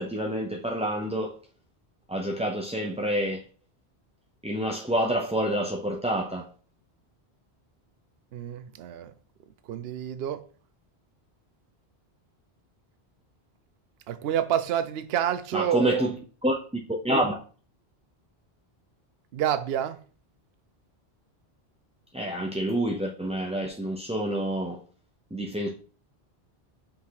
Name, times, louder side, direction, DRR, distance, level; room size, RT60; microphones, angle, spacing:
voice 1, 0.0-1.3 2.1-3.4 4.4-6.5 15.5-16.1 16.4-17.4 22.1-24.8 25.3-25.7, right 1 dB, 10° right, 0.4 m, -28 dB
voice 2, 8.3-9.1 9.7-10.4 14.1-16.1 19.3-20.0, right 10 dB, 70° right, 0.8 m, -28 dB
5.7 x 3.8 x 4.7 m
omnidirectional pair, 1.1 m